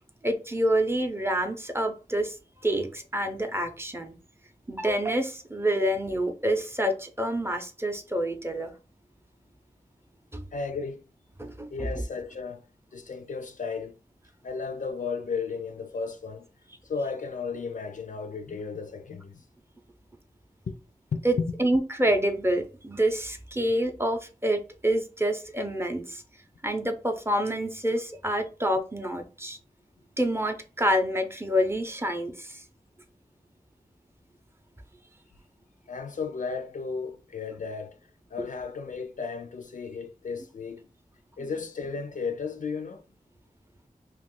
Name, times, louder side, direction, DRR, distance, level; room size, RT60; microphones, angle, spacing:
voice 1, 0.2-2.4 2.6-4.2 4.7-8.7 10.3-10.4 11.4-12.0 21.2-26.2 26.6-29.6 30.2-32.6, right 1 dB, 15° right, 0.6 m, -27 dB
voice 2, 10.5-11.0 11.7-12.6 12.9-14.0 14.4-16.5 16.8-19.4 20.7-20.8 21.1-21.6 35.9-38.0 38.3-40.8 41.4-43.0, left 5 dB, 60° left, 0.4 m, -34 dB
2.4 x 2.4 x 3.6 m
wide cardioid pair, 55°, 15 cm